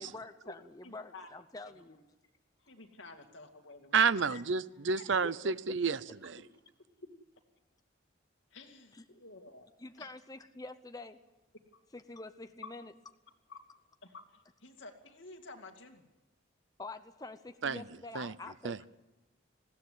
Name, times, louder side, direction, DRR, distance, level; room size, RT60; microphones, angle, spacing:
voice 1, 0.0-2.0 5.0-5.5 8.9-9.0 9.8-11.2 11.9-12.9 16.8-18.9, left 2 dB, 20° left, 8 dB, 0.7 m, -46 dB
voice 2, 0.8-1.3 1.7-2.0 2.6-4.4 4.7-5.0 8.5-9.7 10.0-10.1 13.5-13.6 14.0-16.1, left 3 dB, 75° left, 4 dB, 2.5 m, -52 dB
voice 3, 3.9-6.4 17.6-17.8 18.1-18.3 18.6-18.8, right 5 dB, 70° right, 17 dB, 0.7 m, -30 dB
20.0 x 16.0 x 9.5 m, 1.0 s
head